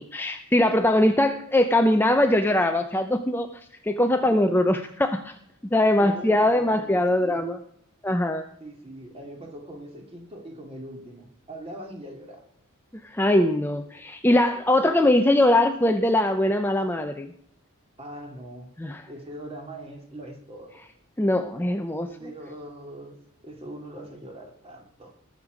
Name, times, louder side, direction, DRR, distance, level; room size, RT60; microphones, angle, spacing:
voice 1, 0.0-5.3 5.6-7.6 8.0-8.5 13.0-17.3 18.8-19.0 21.2-22.1, left 1 dB, 10° left, 6 dB, 0.6 m, -22 dB
voice 2, 6.0-7.4 8.6-12.5 14.8-14.9 18.0-18.7 19.1-20.8 22.1-23.2 23.4-25.1, right 1 dB, 25° right, 3 dB, 2.4 m, -41 dB
20.0 x 6.7 x 5.0 m, 0.68 s
head